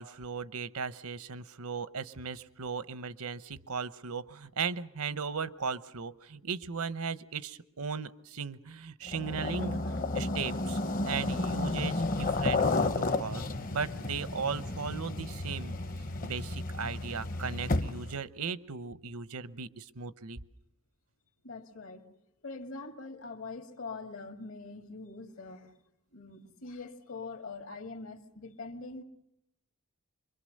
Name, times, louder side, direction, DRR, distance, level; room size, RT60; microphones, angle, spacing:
voice 1, 0.0-10.8 11.0-15.8 16.1-20.4, right 5 dB, 85° right, 14 dB, 0.9 m, -37 dB
sound 1, 9.1-18.2, left 2 dB, 40° left, 0.8 m, -32 dB
voice 2, 21.4-22.1 22.4-25.7 26.1-29.0, left 3 dB, 70° left, 6 dB, 2.0 m, -43 dB
25.5 x 23.0 x 6.5 m, 0.80 s
head